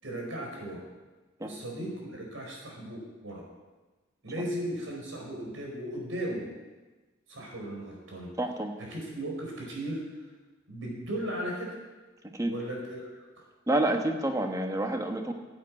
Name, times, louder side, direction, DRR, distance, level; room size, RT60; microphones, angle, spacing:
voice 1, 0.0-0.8 1.4-3.4 4.2-6.5 7.3-8.3 8.8-10.0 10.7-11.8 12.5-13.4, right 1 dB, 85° right, -1 dB, 4.7 m, -36 dB
voice 2, 8.4-8.7 12.3-12.5 13.7-15.3, right 1 dB, 15° right, 4 dB, 1.2 m, -28 dB
11.5 x 8.7 x 8.5 m, 1.2 s
head